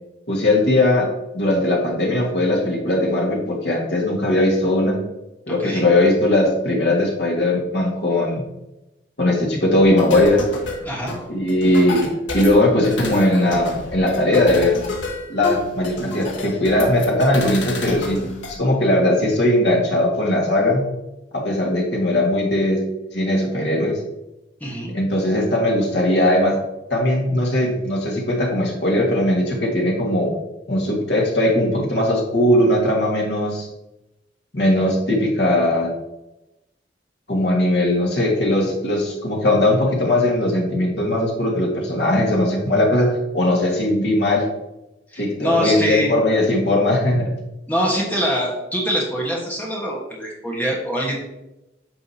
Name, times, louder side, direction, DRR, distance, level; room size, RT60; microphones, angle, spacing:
voice 1, 0.3-1.1 1.3-5.0 5.5-8.4 9.2-10.4 11.3-14.8 15.3-20.9 21.3-22.9 23.1-24.0 24.9-26.6 26.9-30.3 30.7-33.7 34.5-35.9 37.3-44.5 45.2-47.3, left 1 dB, 65° left, -1 dB, 1.8 m, -19 dB
voice 2, 5.5-5.8 10.8-11.2 24.6-24.9 45.1-46.1 47.7-51.2, equal, 10° left, -3 dB, 1.4 m, -24 dB
sound 1, 10.0-18.6, left 2 dB, 90° left, 1.4 m, -30 dB
8.9 x 5.1 x 2.8 m, 0.93 s
head